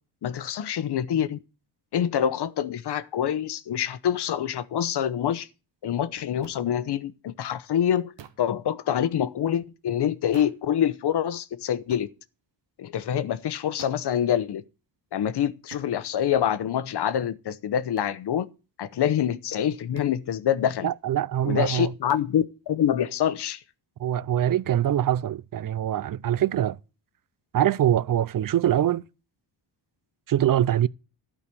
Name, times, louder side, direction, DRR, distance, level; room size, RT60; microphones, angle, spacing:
voice 1, 0.2-1.4 1.9-5.5 5.8-8.1 8.4-12.1 12.8-14.6 15.1-18.5 18.8-20.9 21.4-23.6, left 9 dB, 70° left, 0.9 m, -26 dB
sound 1, 6.4-6.6 8.2-8.5 10.3-10.7 11.9-12.1 13.8-14.1 15.7-15.9 18.0-18.2 19.9-20.2 22.1-22.3, right 9 dB, 90° right, 1.1 m, -47 dB
voice 2, 20.8-21.9 24.0-26.8 27.5-29.0 30.3-30.9, right 11 dB, 55° right, 0.5 m, -23 dB
12.5 x 5.0 x 8.3 m
cardioid pair, 85°, 42 cm